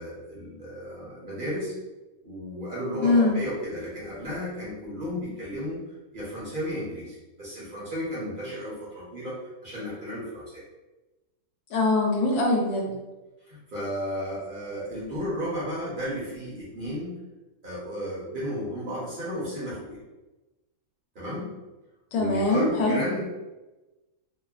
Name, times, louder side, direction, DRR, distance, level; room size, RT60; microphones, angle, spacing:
voice 1, 0.0-1.7 2.2-5.8 6.1-10.6 12.8-12.9 13.5-17.2 17.6-20.0 21.1-21.5 22.1-23.2, equal, 40° right, -8 dB, 0.8 m, -33 dB
voice 2, 3.0-3.4 11.7-12.9 22.1-23.0, left 2 dB, 85° left, -1 dB, 1.2 m, -22 dB
2.9 x 2.1 x 2.4 m, 1.1 s
omnidirectional pair, 1.7 m